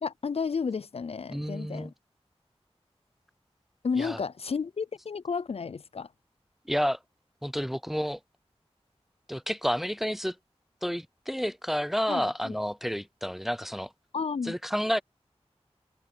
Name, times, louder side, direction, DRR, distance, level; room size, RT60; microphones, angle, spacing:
voice 1, 0.0-1.9 3.8-6.1 12.1-12.6 14.1-14.6, left 5 dB, 65° left, 0.4 m, -32 dB
voice 2, 1.3-1.9 4.0-4.2 6.7-7.0 7.4-8.2 9.3-10.4 10.8-13.9 14.4-15.0, equal, ahead, 0.5 m, -30 dB
open air
wide cardioid pair, 70°, 11 cm